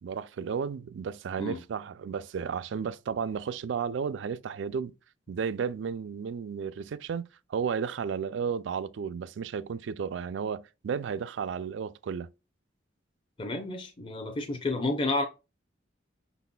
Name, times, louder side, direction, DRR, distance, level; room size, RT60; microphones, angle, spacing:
voice 1, 0.0-4.9 5.3-7.2 7.5-12.3, right 6 dB, 75° right, 0.3 m, -33 dB
voice 2, 13.4-15.2, left 2 dB, 25° left, 0.6 m, -30 dB
5.7 x 4.1 x 2.2 m
head